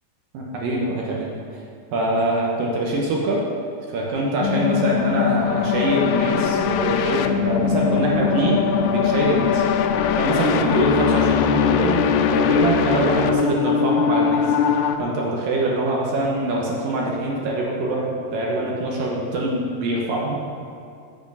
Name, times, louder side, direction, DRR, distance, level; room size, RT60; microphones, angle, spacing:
voice 1, 0.3-1.3 1.9-3.4 3.9-9.6 10.2-20.4, right 2 dB, 65° right, -2 dB, 2.6 m, -24 dB
sound 1, 4.4-15.0, left 7 dB, 85° left, 2.7 m, -21 dB
14.5 x 7.6 x 5.6 m, 2.4 s
omnidirectional pair, 4.8 m